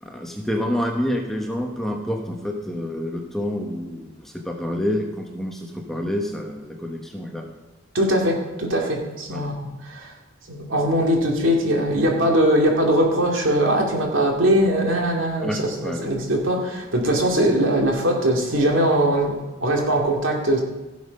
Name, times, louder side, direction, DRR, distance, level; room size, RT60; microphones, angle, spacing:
voice 1, 0.0-7.5 9.3-9.5 15.4-16.1, left 1 dB, ahead, 1 dB, 1.1 m, -28 dB
voice 2, 7.9-10.1 10.5-20.6, right 1 dB, 70° right, 1 dB, 2.7 m, -21 dB
16.0 x 7.2 x 5.4 m, 1.1 s
head